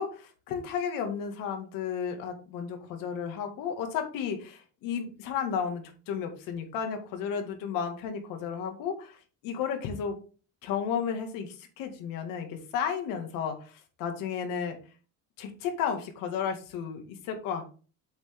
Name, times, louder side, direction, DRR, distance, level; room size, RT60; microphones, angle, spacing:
voice 1, 0.0-9.2 9.4-10.2 10.6-14.8 15.4-17.6, left 7 dB, 75° left, 5 dB, 2.0 m, -33 dB
7.9 x 6.1 x 3.5 m, 0.37 s
cardioid pair, 180°, 33 cm